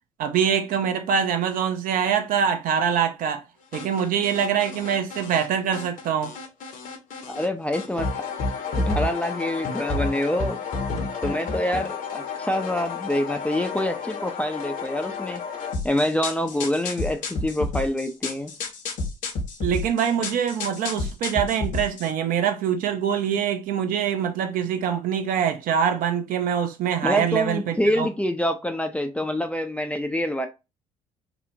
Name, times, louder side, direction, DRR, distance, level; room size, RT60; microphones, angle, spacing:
voice 1, 0.2-3.4 3.7-6.3 19.6-28.1, right 8 dB, 55° right, 0.5 m, -24 dB
sound 1, 3.7-5.5 5.7-7.5 7.7-22.1, left 3 dB, 50° left, 0.7 m, -31 dB
voice 2, 7.3-8.1 8.8-10.6 11.2-15.5 15.8-18.5 27.0-30.5, left 1 dB, 5° left, 0.4 m, -26 dB
2.7 x 2.0 x 2.6 m
hypercardioid pair, 50°, 17 cm